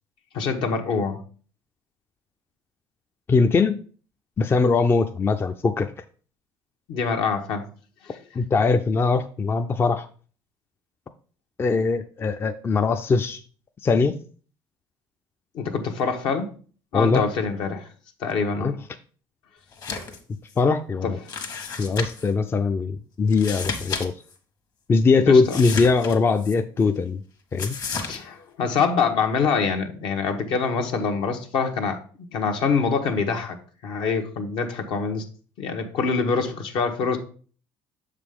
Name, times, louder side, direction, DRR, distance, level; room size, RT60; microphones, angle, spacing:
voice 1, 0.3-1.2 6.9-7.6 8.0-8.2 15.5-16.5 16.9-17.9 18.2-18.8 21.0-21.3 25.2-25.6 28.1-32.0 32.3-33.6 33.8-35.2 35.6-37.2, left 5 dB, 70° left, 4 dB, 1.2 m, -25 dB
voice 2, 3.3-3.8 4.4-5.9 8.4-10.1 11.6-13.4 13.8-14.2 16.9-17.2 18.6-18.7 20.6-21.2 21.8-24.1 24.9-27.2 27.5-27.8, left 4 dB, 25° left, 8 dB, 0.4 m, -21 dB
sound 1, 19.7-20.2 20.5-20.6 21.3-22.3 23.3-24.1 24.3-24.4 25.4-26.5 27.6-28.2, left 5 dB, 45° left, 1.4 m, -32 dB
6.7 x 4.9 x 3.6 m, 0.42 s
cardioid pair, 100°, 9 cm